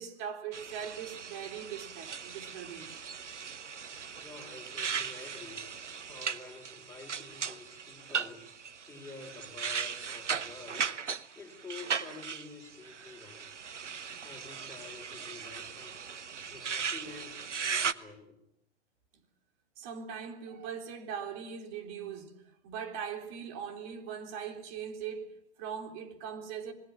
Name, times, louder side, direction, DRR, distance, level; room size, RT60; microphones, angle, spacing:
voice 1, 0.0-2.9 19.8-22.4 22.6-26.7, right 7 dB, 40° right, 3.6 m, -40 dB
sound 1, 0.5-17.9, right 6 dB, 90° right, 1.0 m, -38 dB
voice 2, 4.1-5.7 6.1-8.5 8.8-10.9 11.3-13.5 14.2-16.0 16.5-18.4, left 3 dB, 5° left, 4.7 m, -49 dB
26.0 x 21.5 x 7.3 m
hypercardioid pair, 120°, 35 cm